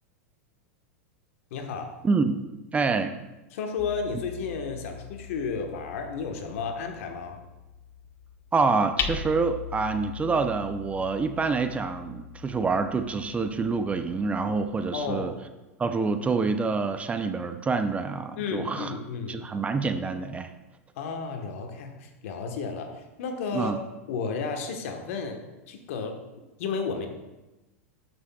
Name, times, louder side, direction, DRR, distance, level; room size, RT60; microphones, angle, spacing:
voice 1, 1.5-2.0 3.5-7.4 14.9-15.4 18.4-19.4 21.0-23.8 24.1-25.4 25.7-27.1, left 5 dB, 65° left, 5 dB, 1.2 m, -33 dB
voice 2, 2.0-2.4 2.7-3.2 8.5-15.3 15.8-19.0 19.3-20.5 23.5-23.8, right 4 dB, 15° right, 8 dB, 0.5 m, -27 dB
Hammer, 3.8-15.5, left 7 dB, 30° left, 0.6 m, -40 dB
12.5 x 6.1 x 2.3 m, 1.0 s
hypercardioid pair, 105°, 8 cm